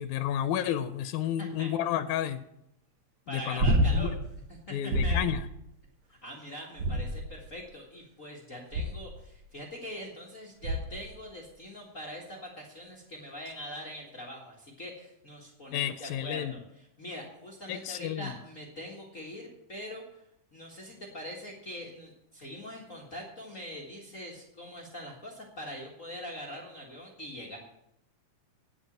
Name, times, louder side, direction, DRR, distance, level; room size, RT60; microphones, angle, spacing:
voice 1, 0.0-2.4 3.3-3.7 3.9-4.1 4.7-5.4 15.7-16.6 17.7-18.4, left 11 dB, 85° left, 10 dB, 2.0 m, -31 dB
voice 2, 1.4-1.7 3.3-4.1 4.7-5.2 6.1-20.2 20.5-27.6, equal, 35° left, -2 dB, 1.5 m, -43 dB
sound 1, 3.6-4.2 4.9-5.4 6.8-7.5 8.7-9.2 10.6-11.1 13.5-13.6, equal, 90° right, 0.9 m, -27 dB
9.8 x 8.0 x 7.2 m, 0.81 s
omnidirectional pair, 3.4 m